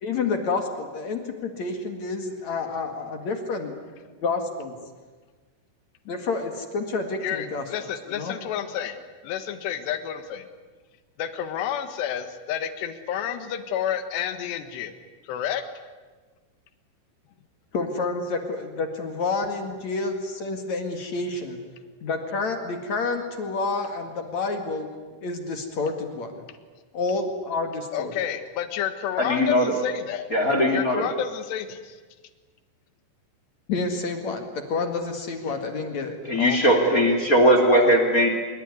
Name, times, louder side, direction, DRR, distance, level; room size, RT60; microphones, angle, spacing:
voice 1, 0.0-3.7 4.2-4.7 6.1-7.6 8.1-8.3 17.7-21.6 22.0-24.9 25.2-26.4 26.9-28.1 33.7-36.2, left 3 dB, 50° left, 5 dB, 2.5 m, -29 dB
voice 2, 7.2-9.0 9.2-10.5 11.2-14.9 15.2-15.6 27.9-30.3 30.7-32.0 36.4-37.1, left 10 dB, 70° left, 9 dB, 3.5 m, -30 dB
voice 3, 29.2-29.7 30.3-31.1 36.3-38.3, equal, 25° left, 5 dB, 2.1 m, -19 dB
25.0 x 23.5 x 9.7 m, 1.4 s
omnidirectional pair, 5.4 m